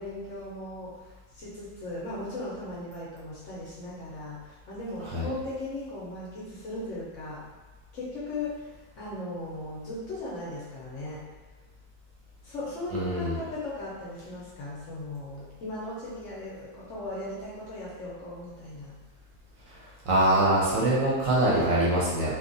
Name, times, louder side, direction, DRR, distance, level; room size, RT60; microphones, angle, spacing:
voice 1, 0.0-7.4 7.9-11.3 12.4-18.9, left 2 dB, 60° left, -7 dB, 0.9 m, -37 dB
voice 2, 12.9-13.4 20.1-22.3, right 1 dB, 65° right, -6 dB, 0.9 m, -23 dB
2.8 x 2.3 x 2.5 m, 1.2 s
omnidirectional pair, 1.7 m